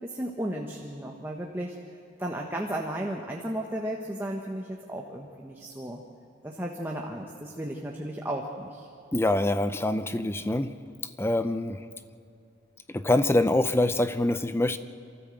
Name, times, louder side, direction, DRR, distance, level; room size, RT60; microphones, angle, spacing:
voice 1, 0.0-1.7 2.2-6.0 6.4-8.9, right 1 dB, 10° right, 0 dB, 1.2 m, -34 dB
voice 2, 9.1-10.7 11.2-11.8 12.9-14.8, left 1 dB, 15° left, 11 dB, 0.6 m, -25 dB
27.5 x 14.0 x 7.7 m, 2.6 s
head